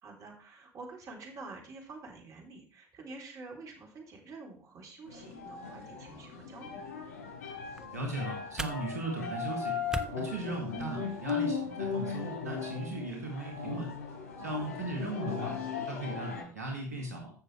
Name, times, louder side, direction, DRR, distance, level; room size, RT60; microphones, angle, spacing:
voice 1, 0.0-6.9 14.4-14.8, right 3 dB, 40° right, 0 dB, 3.4 m, -48 dB
sound 1, 5.1-16.4, left 5 dB, 75° left, 4.6 m, -37 dB
sound 2, 7.5-11.4, right 2 dB, 10° right, 0.8 m, -43 dB
voice 2, 7.9-9.8 10.2-13.9 14.4-15.5 15.9-17.3, right 2 dB, 90° right, 0 dB, 2.2 m, -37 dB
14.5 x 6.7 x 3.3 m, 0.41 s
hypercardioid pair, 70°, 8 cm